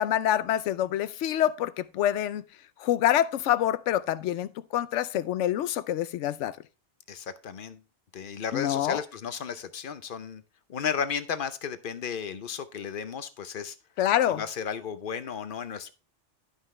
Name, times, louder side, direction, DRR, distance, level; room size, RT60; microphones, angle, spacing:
voice 1, 0.0-2.4 2.8-6.6 8.5-9.0 14.0-14.4, left 11 dB, 85° left, 0.9 m, -26 dB
voice 2, 7.1-7.8 8.1-10.4 10.7-13.7 14.4-15.9, left 7 dB, 55° left, 0.7 m, -34 dB
11.5 x 5.5 x 3.2 m
omnidirectional pair, 1.2 m